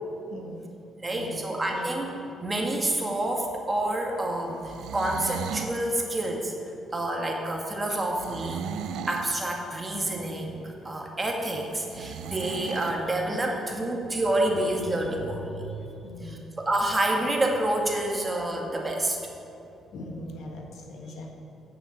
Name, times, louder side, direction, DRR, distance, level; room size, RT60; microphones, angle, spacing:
voice 1, 0.3-0.7 1.1-1.4 1.7-1.9 16.0-16.4 19.9-21.3, left 1 dB, 75° left, 1 dB, 1.6 m, -40 dB
voice 2, 1.0-2.1 2.4-6.5 6.9-8.7 9.1-15.8 16.2-19.2, right 1 dB, 20° right, 1 dB, 1.8 m, -28 dB
sound 1, 4.5-5.8 8.1-9.4 11.9-13.0, right 8 dB, 85° right, 0.4 m, -36 dB
9.0 x 6.9 x 8.0 m, 2.7 s
cardioid pair, 90°, 0 cm